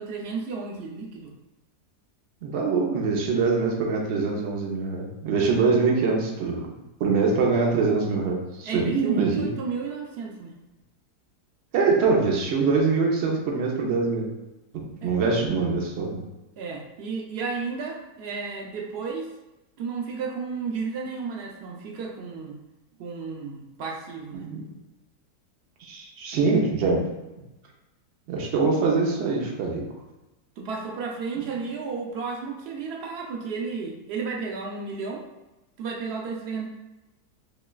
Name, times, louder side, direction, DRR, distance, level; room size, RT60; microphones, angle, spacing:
voice 1, 0.0-1.3 8.6-10.5 15.0-15.1 16.6-19.3 19.8-22.6 23.0-24.5 30.6-35.3 35.8-36.7, right 5 dB, 85° right, -1 dB, 0.5 m, -33 dB
voice 2, 2.4-6.7 7.0-9.5 11.7-14.3 14.9-16.2 24.3-24.6 25.8-27.0 27.4-27.5 28.3-29.8, right 4 dB, 55° right, -1 dB, 0.8 m, -24 dB
5.1 x 2.3 x 2.3 m, 1.0 s
omnidirectional pair, 1.7 m